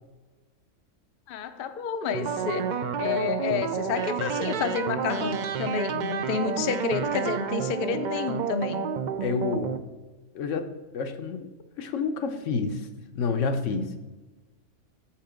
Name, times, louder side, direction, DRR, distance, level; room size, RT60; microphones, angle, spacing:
voice 1, 1.3-8.8, left 6 dB, 60° left, 9 dB, 0.6 m, -30 dB
sound 1, 2.1-9.8, right 7 dB, 70° right, 0.4 m, -30 dB
voice 2, 9.2-9.8 10.3-10.7 10.9-11.5 11.8-12.9 13.1-14.0, left 5 dB, 75° left, 7 dB, 1.1 m, -29 dB
6.6 x 5.9 x 5.0 m, 1.2 s
omnidirectional pair, 1.3 m